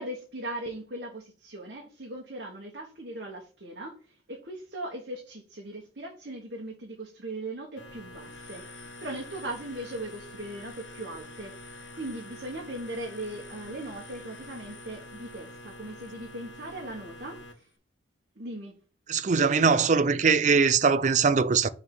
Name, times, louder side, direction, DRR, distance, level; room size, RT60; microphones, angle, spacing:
voice 1, 0.0-17.7 18.4-18.7, right 1 dB, 60° right, 1.4 m, -39 dB
sound 1, 7.8-17.5, left 1 dB, 90° left, 1.4 m, -46 dB
voice 2, 19.1-21.7, right 5 dB, 40° right, 0.4 m, -22 dB
6.5 x 3.5 x 6.1 m
head